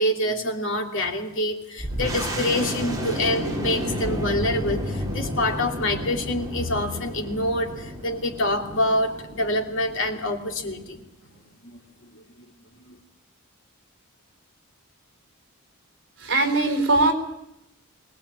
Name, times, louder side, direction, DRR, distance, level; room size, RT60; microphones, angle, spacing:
voice 1, 0.0-11.0 11.6-11.8 12.1-12.2 12.9-13.0, left 1 dB, 60° left, 2 dB, 2.8 m, -26 dB
sound 1, 1.8-11.0, equal, 15° right, 5.2 m, -32 dB
voice 2, 16.2-17.1, right 2 dB, 55° right, 5 dB, 4.3 m, -20 dB
23.5 x 19.5 x 8.7 m, 0.83 s
head